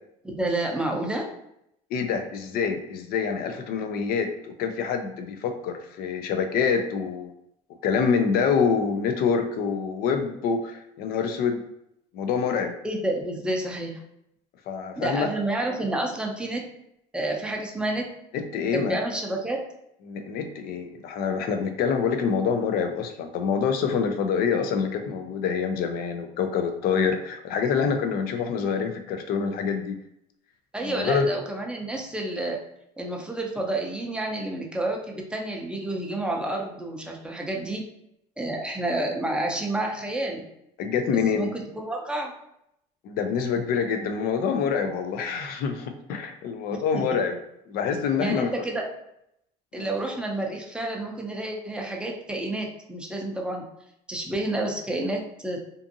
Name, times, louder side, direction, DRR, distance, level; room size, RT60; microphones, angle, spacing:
voice 1, 0.2-1.3 12.8-14.0 15.0-16.6 17.1-18.1 18.7-19.7 30.7-32.6 33.0-37.8 38.4-40.5 41.3-42.3 46.9-47.0 48.2-48.9 49.7-53.6 54.1-55.6, right 1 dB, 5° right, 0 dB, 0.5 m, -29 dB
voice 2, 1.9-7.3 7.8-11.6 12.1-12.7 14.7-15.3 18.3-19.0 20.1-30.0 30.8-31.3 40.8-41.5 43.0-47.4 47.7-48.6 49.7-49.9, left 6 dB, 55° left, 6 dB, 0.4 m, -26 dB
2.5 x 2.5 x 2.6 m, 0.79 s
supercardioid pair, 105°, 18 cm